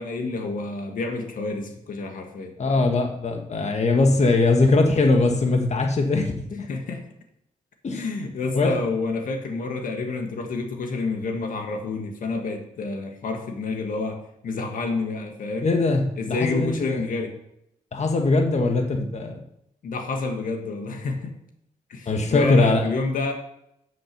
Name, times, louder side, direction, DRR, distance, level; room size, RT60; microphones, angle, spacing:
voice 1, 0.0-2.5 6.7-7.1 7.9-15.7 16.2-17.3 19.8-21.3 21.9-23.3, left 3 dB, 80° left, 4 dB, 1.7 m, -29 dB
voice 2, 2.6-6.7 7.8-8.0 8.5-8.8 15.6-16.0 16.3-17.0 17.9-19.4 22.1-22.8, left 3 dB, 55° left, 4 dB, 1.5 m, -21 dB
7.7 x 7.4 x 6.7 m, 0.79 s
cardioid pair, 55°, 14 cm